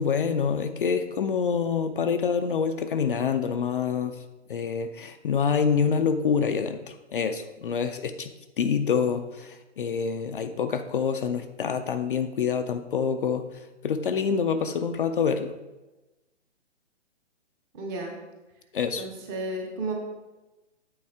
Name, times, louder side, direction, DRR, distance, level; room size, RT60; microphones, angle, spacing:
voice 1, 0.0-4.2 4.5-15.5 18.7-19.0, left 6 dB, 50° left, 8 dB, 0.4 m, -26 dB
voice 2, 17.7-18.1 19.0-19.9, right 2 dB, 15° right, 1 dB, 0.7 m, -33 dB
8.6 x 4.2 x 3.5 m, 1.1 s
figure-of-eight pair, 135°, 36 cm